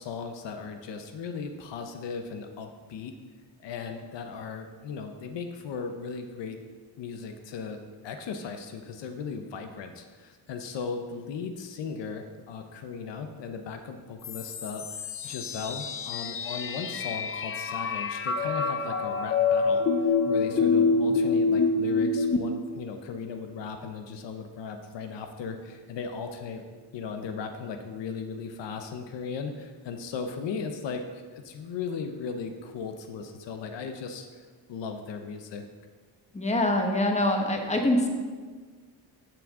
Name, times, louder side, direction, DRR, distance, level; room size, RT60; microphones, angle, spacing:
voice 1, 0.0-3.1 3.6-6.6 7.0-14.9 15.2-26.6 26.9-34.4 34.7-35.6, left 5 dB, 75° left, 6 dB, 0.8 m, -37 dB
sound 1, 14.2-22.4, left 4 dB, 30° left, 0.5 m, -26 dB
voice 2, 36.3-38.1, left 1 dB, 15° left, 2 dB, 1.0 m, -24 dB
14.5 x 6.1 x 3.7 m, 1.5 s
wide cardioid pair, 170°, 44 cm